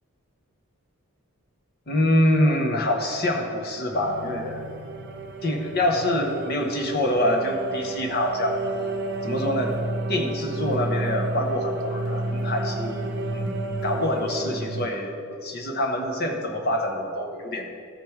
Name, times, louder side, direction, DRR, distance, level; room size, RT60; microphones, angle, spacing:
voice 1, 1.9-4.6 5.4-8.6 9.2-9.7 10.1-13.5 13.8-17.7, left 1 dB, 45° left, 3 dB, 1.0 m, -25 dB
sound 1, 3.9-14.9, right 2 dB, 55° right, 0.6 m, -31 dB
13.5 x 5.3 x 4.6 m, 2.3 s
head